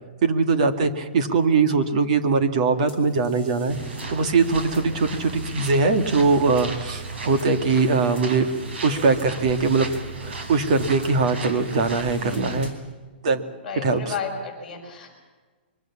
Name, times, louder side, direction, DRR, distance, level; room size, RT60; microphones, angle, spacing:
voice 1, 0.2-3.8 4.1-8.5 8.8-9.9 10.2-12.7 13.2-13.4 13.8-14.1, right 4 dB, 40° right, 7 dB, 2.1 m, -21 dB
sound 1, 2.9-12.9, equal, 15° right, 3.8 m, -49 dB
sound 2, 3.7-12.7, right 3 dB, 85° right, 6.1 m, -35 dB
voice 2, 12.2-12.5 13.6-15.1, left 5 dB, 5° left, -7 dB, 5.3 m, -33 dB
25.5 x 23.0 x 7.3 m, 1.4 s
hypercardioid pair, 175°, 6 cm